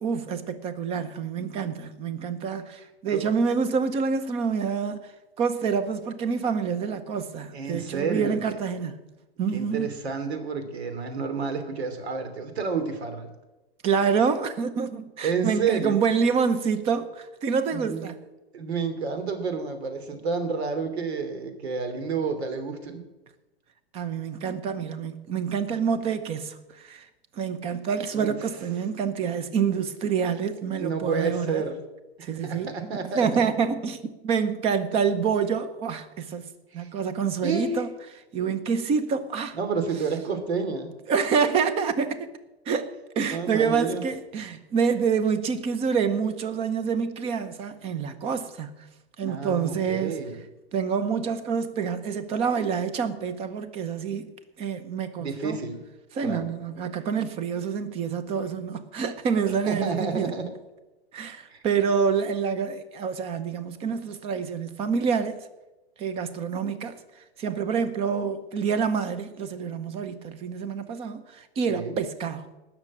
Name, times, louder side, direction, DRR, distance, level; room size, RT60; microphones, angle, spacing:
voice 1, 0.0-5.0 5.4-9.0 9.4-9.9 13.8-18.1 23.9-27.1 27.3-31.6 32.2-32.7 33.1-37.9 38.3-39.6 41.1-42.3 42.7-48.8 49.2-50.2 50.7-54.3 54.6-55.6 56.1-60.3 61.1-65.4 66.0-67.0 67.4-72.5, right 6 dB, 20° right, 0.8 m, -27 dB
voice 2, 7.5-8.6 9.5-13.3 15.2-16.0 17.7-18.1 18.5-23.0 28.1-28.4 30.7-31.8 32.2-33.3 36.7-36.9 37.4-37.8 39.5-40.9 43.2-44.0 49.3-50.4 55.2-55.8 56.2-56.4 59.7-60.5 61.5-61.6 71.7-71.9, right 5 dB, 70° right, 3.1 m, -30 dB
18.5 x 6.7 x 7.3 m
hypercardioid pair, 155°, 33 cm